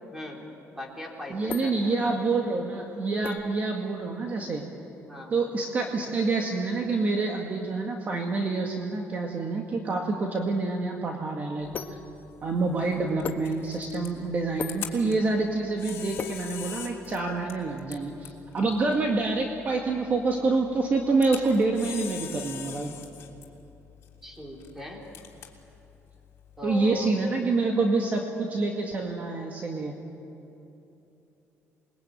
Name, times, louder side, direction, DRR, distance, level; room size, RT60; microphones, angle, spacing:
voice 1, 0.1-0.4 0.7-2.2 5.1-5.3 24.2-25.0 26.6-27.1, left 1 dB, 5° right, 0 dB, 4.0 m, -39 dB
sound 1, 0.9-17.3, left 6 dB, 35° left, 1.2 m, -43 dB
voice 2, 1.3-4.6 5.3-12.0 12.4-22.9 26.6-29.9, right 3 dB, 30° right, 1 dB, 1.9 m, -27 dB
Camera, 11.6-27.1, left 9 dB, 55° left, 3.4 m, -44 dB
28.0 x 22.0 x 9.1 m, 3.0 s
cardioid pair, 170°, 5 cm